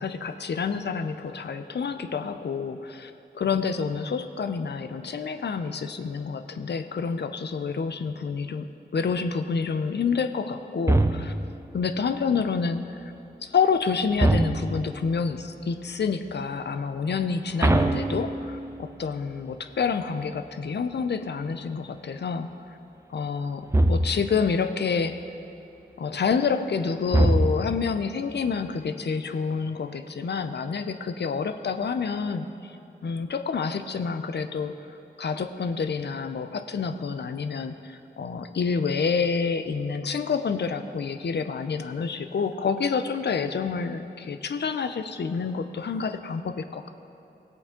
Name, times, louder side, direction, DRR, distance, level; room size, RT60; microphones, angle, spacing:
voice 1, 0.0-11.3 11.7-13.1 13.4-22.8 23.1-25.2 26.0-34.7 35.2-46.9, left 5 dB, 70° left, 9 dB, 0.6 m, -28 dB
sound 1, 10.9-11.6 14.2-15.0 17.6-18.8 23.7-24.4 27.1-27.9, right 1 dB, 15° right, 0.5 m, -23 dB
15.5 x 8.5 x 3.7 m, 2.8 s
wide cardioid pair, 65°, 18 cm